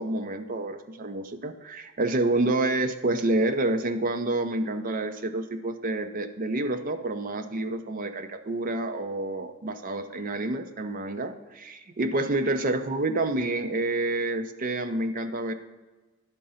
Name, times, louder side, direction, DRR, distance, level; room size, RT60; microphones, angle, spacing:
voice 1, 0.0-15.5, right 2 dB, 40° right, 7 dB, 0.5 m, -28 dB
11.0 x 3.8 x 5.6 m, 1.2 s
head